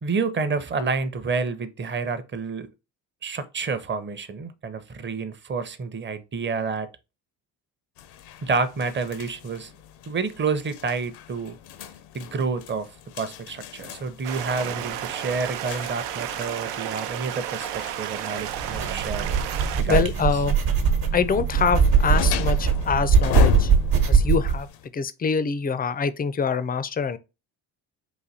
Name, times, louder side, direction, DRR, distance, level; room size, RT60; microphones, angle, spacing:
voice 1, 0.0-2.7 3.2-6.9 8.4-9.7 10.1-11.6 12.1-12.9 13.1-19.3 19.8-20.1, right 4 dB, 25° right, 0.7 m, -29 dB
sound 1, 8.0-24.9, left 10 dB, 75° left, 0.6 m, -35 dB
Stream, 14.2-19.8, right 11 dB, 85° right, 0.6 m, -32 dB
sound 2, 18.5-24.6, right 6 dB, 55° right, 1.2 m, -21 dB
voice 2, 19.9-20.6 21.1-23.7 24.0-24.7 24.9-27.2, left 6 dB, 25° left, 0.4 m, -25 dB
4.0 x 2.6 x 4.1 m
cardioid pair, 85°, 41 cm